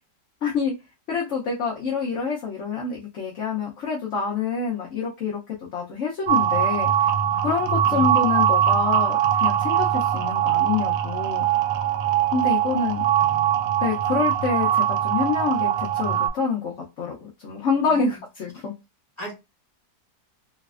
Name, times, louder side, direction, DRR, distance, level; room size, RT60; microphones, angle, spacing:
voice 1, 0.4-0.7 1.1-5.4 5.7-6.9 7.4-11.5 12.3-13.1 13.8-18.7, left 5 dB, 55° left, -2 dB, 1.0 m, -27 dB
sound 1, 6.3-16.3, right 10 dB, 80° right, 1.2 m, -22 dB
voice 2, 13.2-13.6 17.8-18.2 18.6-18.7 19.2-19.3, equal, 15° left, -3 dB, 1.6 m, -39 dB
3.2 x 3.1 x 2.4 m, 0.24 s
omnidirectional pair, 1.8 m